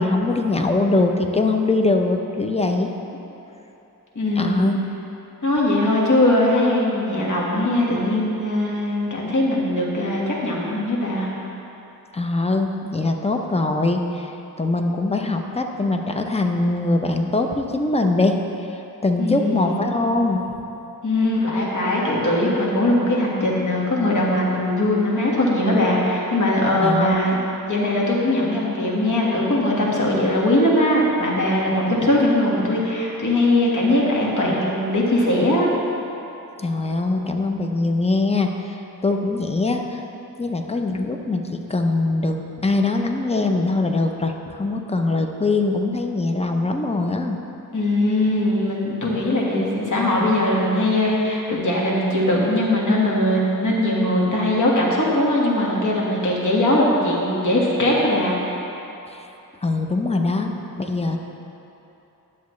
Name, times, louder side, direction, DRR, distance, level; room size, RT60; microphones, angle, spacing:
voice 1, 0.0-2.9 4.4-4.8 12.1-14.3 14.6-18.4 18.7-20.4 26.8-27.2 36.6-40.0 40.4-41.4 41.7-47.4 49.6-49.7 59.1-59.2 59.6-61.2, left 2 dB, 20° left, 4 dB, 0.6 m, -22 dB
voice 2, 4.2-4.7 5.4-11.3 19.2-19.8 21.0-27.4 27.7-35.7 47.7-58.4, left 1 dB, 55° left, -4 dB, 1.6 m, -20 dB
10.5 x 7.1 x 3.2 m, 3.0 s
wide cardioid pair, 75°, 35 cm